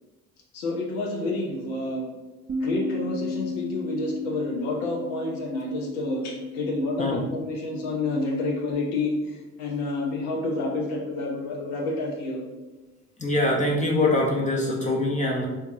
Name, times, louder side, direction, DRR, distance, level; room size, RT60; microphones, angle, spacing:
voice 1, 0.5-2.1 2.6-12.4, left 2 dB, 70° left, 0 dB, 0.9 m, -29 dB
Bass guitar, 2.5-8.7, left 3 dB, 20° right, 0.5 m, -35 dB
voice 2, 13.2-15.5, left 2 dB, 15° left, -2 dB, 0.7 m, -23 dB
4.4 x 2.4 x 2.7 m, 1.2 s
hypercardioid pair, 55°, 42 cm